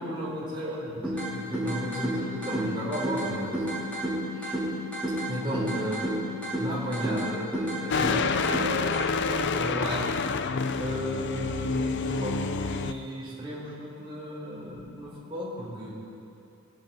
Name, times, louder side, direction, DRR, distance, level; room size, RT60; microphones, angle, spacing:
voice 1, 0.0-4.0 4.3-4.6 5.3-6.1 6.4-15.9, equal, 25° right, -7 dB, 4.1 m, -34 dB
sound 1, 1.0-9.0, equal, 5° left, 4.2 m, -31 dB
sound 2, 7.9-12.9, left 5 dB, 55° left, 0.5 m, -28 dB
22.5 x 11.0 x 4.4 m, 2.7 s
head